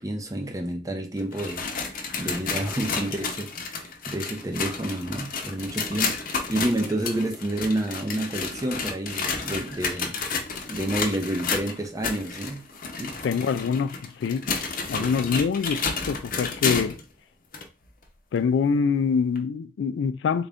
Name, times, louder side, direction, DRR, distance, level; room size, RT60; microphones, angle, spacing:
voice 1, 0.0-1.6 2.2-10.2 10.7-12.6 13.0-13.1, right 1 dB, 20° right, 0.5 m, -29 dB
sound 1, 1.2-17.0 17.5-17.6 18.4-18.5 19.4-19.5, left 4 dB, 50° left, 0.7 m, -31 dB
voice 2, 13.0-14.5 14.9-17.0 18.3-20.5, left 6 dB, 75° left, 0.3 m, -25 dB
3.8 x 2.5 x 3.4 m
head